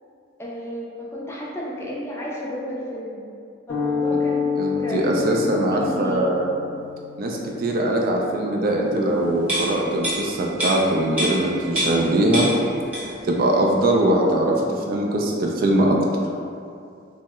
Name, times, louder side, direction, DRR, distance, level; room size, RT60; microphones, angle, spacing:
voice 1, 0.4-3.2 3.7-6.3, equal, 15° left, -5 dB, 0.4 m, -33 dB
sound 1, 3.7-12.1, left 6 dB, 65° left, 0.6 m, -30 dB
voice 2, 4.6-6.4 7.2-12.5 13.2-16.0, right 1 dB, 50° right, -1 dB, 0.3 m, -21 dB
sound 2, 9.4-12.1 12.3-13.3 13.6-13.8, equal, 10° right, 0.8 m, -27 dB
2.7 x 2.1 x 3.5 m, 2.4 s
head